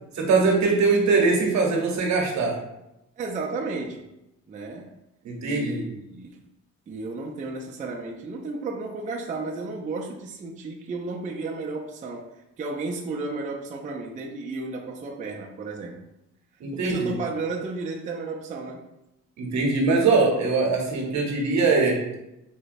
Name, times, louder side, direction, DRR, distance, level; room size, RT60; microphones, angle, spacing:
voice 1, 0.1-2.6 5.2-5.8 16.6-17.2 19.4-22.2, right 4 dB, 65° right, 0 dB, 0.8 m, -22 dB
voice 2, 3.2-4.0 4.5-4.9 5.4-6.4 6.9-16.1 16.7-18.8, right 3 dB, 25° right, -1 dB, 0.4 m, -33 dB
3.9 x 2.1 x 2.5 m, 0.88 s
cardioid pair, 90°, 30 cm